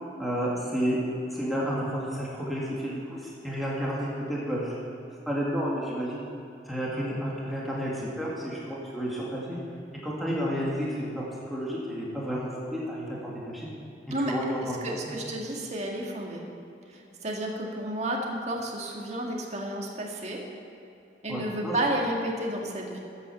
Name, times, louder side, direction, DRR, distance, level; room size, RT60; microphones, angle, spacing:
voice 1, 0.2-1.0 1.3-4.7 5.3-6.3 6.7-9.6 10.0-13.7 14.2-14.8 15.1-15.2 21.3-21.7, equal, ahead, -6 dB, 1.9 m, -31 dB
voice 2, 14.8-16.4 16.9-20.4 21.2-23.0, right 1 dB, 40° right, -1 dB, 1.8 m, -31 dB
14.0 x 8.5 x 6.9 m, 2.8 s
head